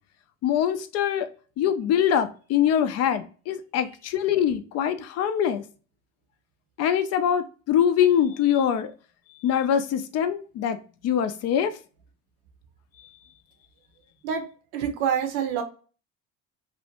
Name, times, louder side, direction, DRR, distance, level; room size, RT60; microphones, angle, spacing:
voice 1, 0.4-1.3 1.6-5.6 6.8-8.9 9.4-10.8 11.0-11.7, left 9 dB, 50° left, 0.4 m, -23 dB
voice 2, 14.7-15.6, right 8 dB, 70° right, 0.7 m, -26 dB
2.5 x 2.1 x 2.8 m
supercardioid pair, 85°, 32 cm